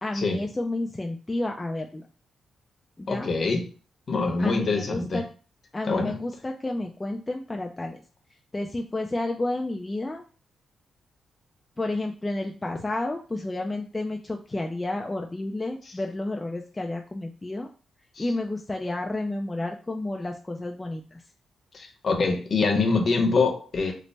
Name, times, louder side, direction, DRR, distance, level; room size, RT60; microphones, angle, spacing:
voice 1, 0.0-2.0 3.0-3.3 4.4-5.2 5.7-8.0 8.5-10.2 11.8-17.7 18.2-21.2, left 2 dB, 15° left, 2 dB, 0.3 m, -31 dB
voice 2, 3.1-3.7 4.1-5.2 5.8-6.1 18.2-18.3 21.7-23.9, left 4 dB, 45° left, 3 dB, 0.8 m, -24 dB
3.2 x 2.0 x 4.0 m, 0.38 s
cardioid pair, 130°, 0 cm